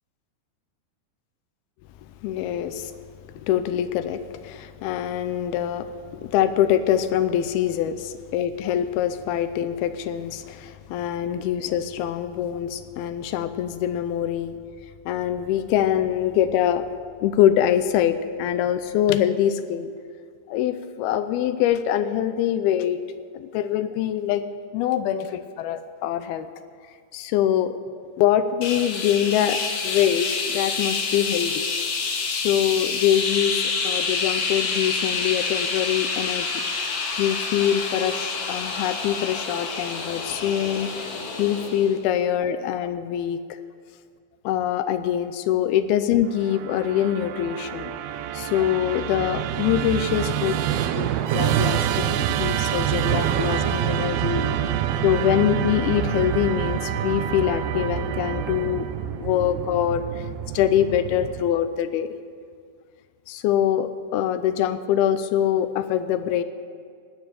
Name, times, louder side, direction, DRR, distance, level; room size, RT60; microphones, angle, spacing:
voice 1, 2.2-2.9 3.3-14.6 15.1-16.9 17.2-19.9 20.5-23.0 23.3-24.4 24.7-26.5 27.1-27.8 28.2-31.6 32.3-36.5 37.2-41.1 41.4-43.6 44.4-47.9 48.3-50.7 51.0-54.4 55.0-58.9 59.2-60.2 60.5-62.1 63.3-66.4, left 10 dB, 80° left, 11 dB, 2.5 m, -24 dB
sound 1, 28.6-42.0, left 4 dB, 60° left, 2.9 m, -28 dB
Musical instrument, 46.4-61.7, right 11 dB, 80° right, 2.4 m, -26 dB
18.5 x 9.1 x 6.9 m, 2.1 s
omnidirectional pair, 4.6 m